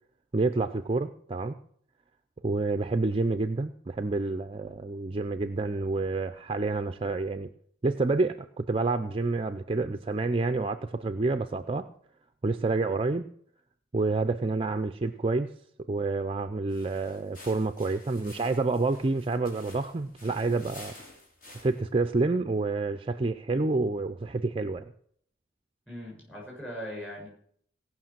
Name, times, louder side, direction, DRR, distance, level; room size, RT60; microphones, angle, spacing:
voice 1, 0.3-1.6 2.4-7.5 7.8-11.9 12.4-13.3 13.9-15.5 15.9-20.9 21.5-24.9, right 3 dB, 25° right, 9 dB, 0.5 m, -28 dB
sound 1, 16.7-21.9, left 2 dB, 45° left, 3.1 m, -51 dB
voice 2, 25.9-27.3, equal, 5° left, -3 dB, 7.2 m, -39 dB
17.5 x 6.0 x 7.4 m, 0.63 s
head